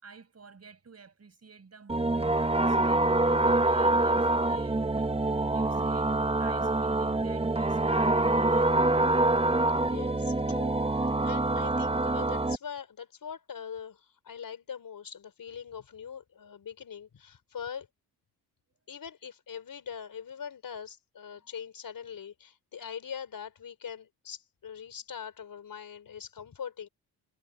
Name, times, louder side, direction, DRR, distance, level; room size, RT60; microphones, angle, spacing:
voice 1, 0.0-8.7, right 5 dB, 35° right, 7.1 m, -52 dB
sound 1, 1.9-12.6, right 2 dB, 15° right, 1.3 m, -25 dB
voice 2, 9.8-17.9 18.9-26.9, left 7 dB, 50° left, 5.0 m, -42 dB
supercardioid pair, 60°, 42 cm